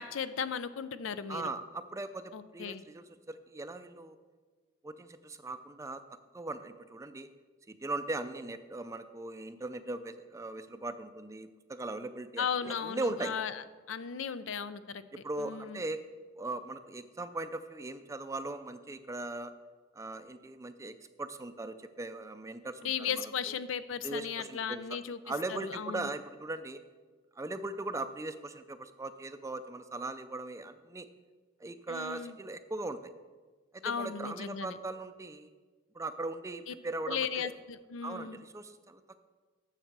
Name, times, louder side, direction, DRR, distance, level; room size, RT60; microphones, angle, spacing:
voice 1, 0.0-1.5 2.3-2.8 12.4-15.0 15.4-15.8 22.8-25.2 25.5-26.1 31.9-32.4 33.8-34.8 36.7-36.8 37.1-38.4, left 7 dB, 75° left, 13 dB, 0.5 m, -36 dB
voice 2, 1.3-4.2 4.8-6.0 6.3-7.3 7.7-13.3 15.1-16.0 16.4-19.5 19.9-23.5 24.0-24.8 25.3-26.8 27.4-31.1 31.6-33.1 33.7-35.5 35.9-37.5 38.0-39.2, right 2 dB, 15° right, 11 dB, 0.4 m, -39 dB
7.5 x 7.3 x 6.7 m, 1.4 s
head